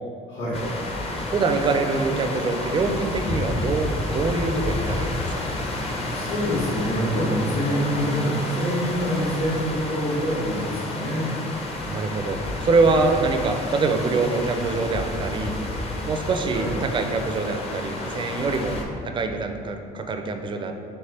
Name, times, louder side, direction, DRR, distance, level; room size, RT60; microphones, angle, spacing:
sound 1, 0.5-18.8, left 2 dB, 35° left, 0.6 m, -30 dB
voice 1, 1.3-5.3 7.7-7.8 11.9-15.6 16.0-20.7, right 3 dB, 30° right, 5 dB, 0.4 m, -24 dB
voice 2, 5.9-11.3 12.8-13.0 16.5-16.7, equal, 80° left, -11 dB, 1.4 m, -26 dB
3.3 x 3.2 x 4.2 m, 2.5 s
cardioid pair, 110°, 17 cm